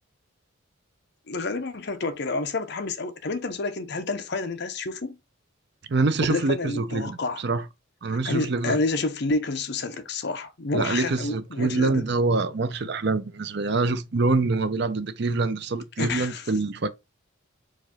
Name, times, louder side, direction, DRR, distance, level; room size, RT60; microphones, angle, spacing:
voice 1, 1.3-5.2 6.3-7.4 8.1-12.0 16.0-16.4, left 3 dB, 55° left, 0.7 m, -29 dB
voice 2, 5.9-7.6 8.0-8.8 10.7-16.9, right 3 dB, 55° right, 0.6 m, -25 dB
4.8 x 2.6 x 4.2 m
head